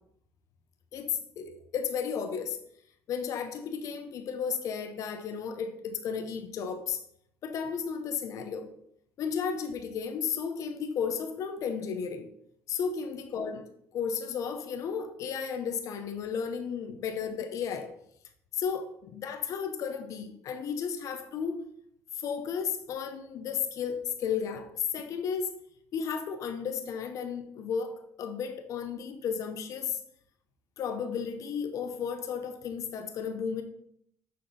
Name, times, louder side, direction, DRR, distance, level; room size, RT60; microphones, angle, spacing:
voice 1, 0.9-2.6 3.1-7.0 7.4-8.7 9.2-12.3 12.7-17.9 18.5-21.6 22.1-25.5 25.9-30.0 30.8-33.6, left 6 dB, 60° left, 0.8 m, -33 dB
6.5 x 4.3 x 4.0 m
supercardioid pair, 80°, 6 cm